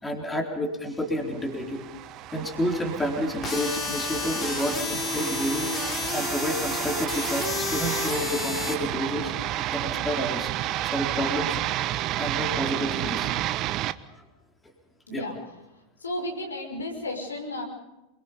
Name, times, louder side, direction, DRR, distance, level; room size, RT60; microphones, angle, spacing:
voice 1, 0.0-1.8 2.3-5.7 6.1-9.3 9.7-10.5 10.8-11.6 12.2-13.3 14.1-14.2 15.1-15.2, equal, 10° left, 1 dB, 4.0 m, -30 dB
sound 1, 1.4-13.9, right 14 dB, 35° right, 0.8 m, -31 dB
sound 2, 3.4-8.7, left 4 dB, 25° left, 5.9 m, -30 dB
voice 2, 16.0-17.6, left 1 dB, 75° left, 1 dB, 5.7 m, -33 dB
27.5 x 23.5 x 5.5 m, 0.97 s
figure-of-eight pair, 90°, 0 cm